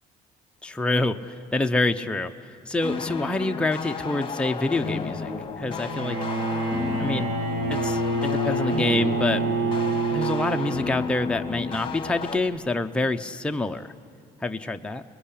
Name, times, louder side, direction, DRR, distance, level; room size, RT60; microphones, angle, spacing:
voice 1, 0.6-1.2 1.5-2.3 2.7-5.3 5.6-6.2 7.0-7.3 7.7-9.4 10.1-13.9 14.4-15.0, left 2 dB, 5° left, 5 dB, 0.7 m, -26 dB
sound 1, 2.8-12.4, left 5 dB, 30° left, 2.1 m, -33 dB
Bowed string instrument, 5.8-11.1, right 2 dB, 80° right, 2.9 m, -27 dB
26.5 x 20.5 x 8.5 m, 2.4 s
cardioid pair, 110°, 17 cm